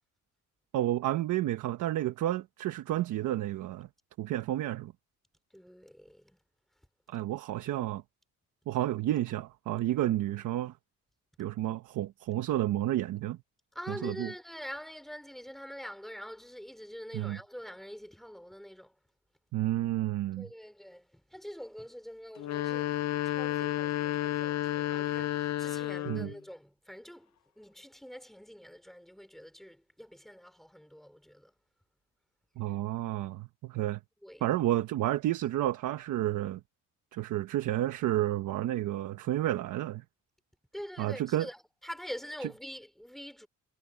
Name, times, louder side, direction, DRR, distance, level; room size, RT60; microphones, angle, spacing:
voice 1, 0.7-3.9 4.2-4.9 7.1-8.0 8.7-10.8 11.4-13.4 14.0-14.3 17.1-17.4 19.5-20.5 26.1-26.3 32.6-34.0 34.4-36.6 37.1-40.0 41.0-41.5, right 14 dB, 85° right, 1.3 m, -31 dB
voice 2, 5.5-6.4 13.7-19.0 20.4-31.5 34.2-34.4 40.7-43.5, equal, ahead, 5.7 m, -45 dB
sound 1, 22.4-26.4, left 14 dB, 60° left, 0.8 m, -31 dB
cardioid pair, 90°, 30 cm